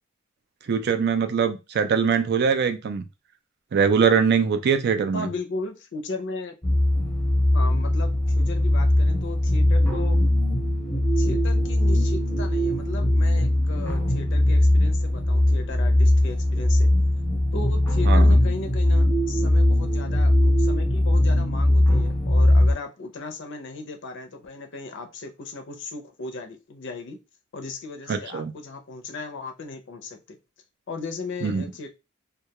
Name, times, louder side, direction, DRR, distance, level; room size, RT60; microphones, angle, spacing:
voice 1, 0.7-3.0 3.7-5.3 18.1-18.4 28.1-28.5 31.4-31.6, right 6 dB, 50° right, 0.4 m, -22 dB
voice 2, 5.1-6.5 7.5-10.2 11.2-16.9 17.5-27.2 27.5-30.4 30.9-31.9, left 3 dB, 60° left, 0.5 m, -36 dB
sound 1, 6.6-22.7, left 1 dB, 10° left, 0.6 m, -20 dB
2.2 x 2.2 x 2.8 m
head